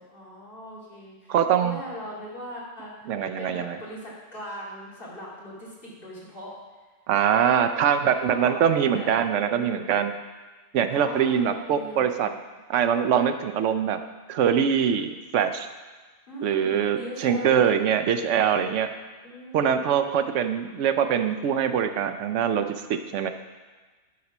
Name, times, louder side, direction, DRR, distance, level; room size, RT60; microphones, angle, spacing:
voice 1, 0.0-6.5 8.0-9.1 9.5-10.0 10.9-12.4 16.3-17.6 19.2-19.8, equal, 45° left, -7 dB, 2.8 m, -40 dB
voice 2, 1.3-1.8 3.1-3.8 7.1-10.1 10.7-12.3 12.7-14.0 14.3-15.7 16.4-18.9 19.5-23.3, right 8 dB, 80° right, 9 dB, 0.9 m, -23 dB
11.5 x 4.2 x 6.0 m, 1.3 s
omnidirectional pair, 1.2 m